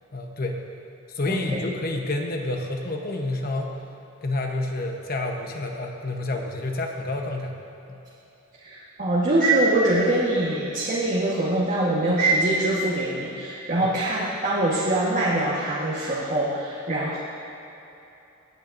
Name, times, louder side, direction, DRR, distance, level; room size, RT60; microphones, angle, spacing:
voice 1, 0.1-0.6 1.1-3.8 4.2-7.5 7.9-8.0 13.8-13.9, left 2 dB, 45° left, 2 dB, 1.0 m, -29 dB
voice 2, 1.3-1.6 8.6-17.2, right 2 dB, 40° right, -7 dB, 1.4 m, -23 dB
20.0 x 8.8 x 2.7 m, 3.0 s
head